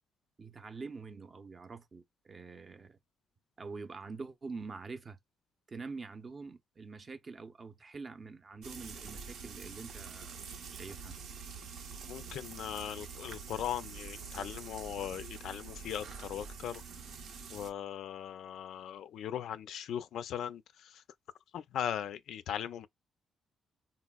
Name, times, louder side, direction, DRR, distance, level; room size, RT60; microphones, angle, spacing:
voice 1, 0.4-3.0 3.6-5.2 5.7-10.4 10.7-11.1, right 4 dB, 35° right, 0.6 m, -45 dB
Frying (food), 8.6-17.7, right 5 dB, 75° right, 0.7 m, -46 dB
voice 2, 12.1-16.8 17.5-20.6 21.5-22.9, left 10 dB, 75° left, 0.3 m, -39 dB
3.9 x 2.0 x 2.3 m
cardioid pair, 90°, 0 cm